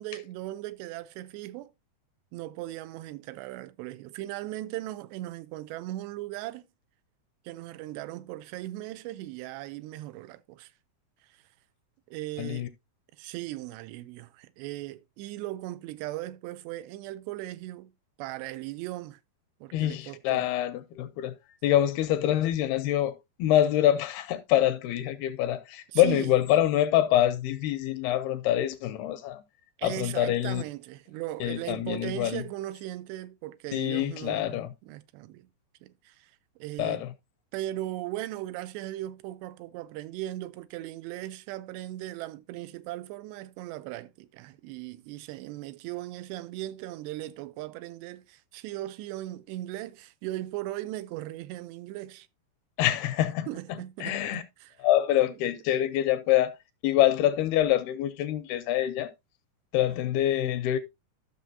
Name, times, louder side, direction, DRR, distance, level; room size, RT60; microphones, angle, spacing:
voice 1, 0.0-1.7 2.3-6.7 7.5-10.7 11.2-11.4 12.1-12.7 13.2-17.9 18.2-19.2 19.6-20.5 25.9-26.3 29.8-35.5 35.8-37.0 37.5-52.3 53.5-54.8 55.3-55.4, right 15 dB, 85° right, 2.8 m, -38 dB
voice 2, 12.4-12.7 19.7-21.3 21.6-29.4 29.8-30.6 31.4-32.4 33.7-34.7 36.8-37.1 52.8-54.4 54.8-56.5 56.8-59.1 59.7-60.8, left 12 dB, 80° left, 2.4 m, -25 dB
12.5 x 6.4 x 2.6 m
omnidirectional pair, 4.8 m